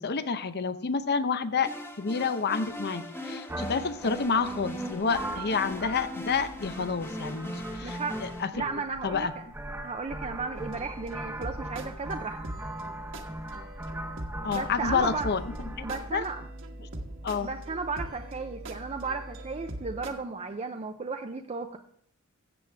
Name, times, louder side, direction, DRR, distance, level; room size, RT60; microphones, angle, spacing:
voice 1, 0.0-1.7 2.0-8.5 9.0-9.3 14.4-16.2 17.2-17.5, left 5 dB, 50° left, 12 dB, 0.7 m, -29 dB
sound 1, 1.6-8.5, equal, 10° left, 1.1 m, -39 dB
sound 2, 3.5-16.1, right 1 dB, 10° right, 0.9 m, -40 dB
voice 2, 7.8-8.2 8.5-9.3 9.8-12.4 14.5-15.3 15.8-16.5 17.4-21.8, right 4 dB, 30° right, 5 dB, 0.5 m, -34 dB
sound 3, 10.5-20.1, right 1 dB, 60° right, 1.4 m, -41 dB
14.0 x 8.0 x 3.4 m, 0.66 s
head